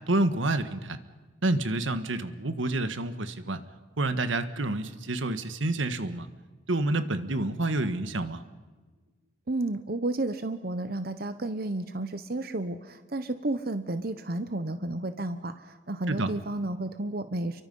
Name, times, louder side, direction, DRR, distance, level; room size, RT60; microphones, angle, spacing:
voice 1, 0.1-1.0 1.4-3.6 4.0-6.3 6.7-8.4 16.1-16.3, right 2 dB, 85° right, 10 dB, 1.5 m, -28 dB
voice 2, 9.5-17.6, right 2 dB, 50° right, 10 dB, 1.0 m, -32 dB
29.5 x 23.5 x 5.6 m, 1.3 s
head